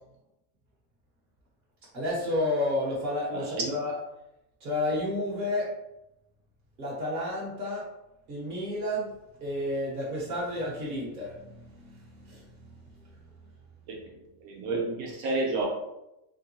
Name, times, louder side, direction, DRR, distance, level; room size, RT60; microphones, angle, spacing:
voice 1, 1.9-3.9 4.6-5.8 6.8-7.9 8.3-9.1 9.4-12.5, left 1 dB, 40° right, -4 dB, 1.3 m, -31 dB
voice 2, 3.3-3.7 14.4-15.7, right 2 dB, 85° right, -1 dB, 1.2 m, -30 dB
3.7 x 3.5 x 2.9 m, 0.88 s
omnidirectional pair, 1.5 m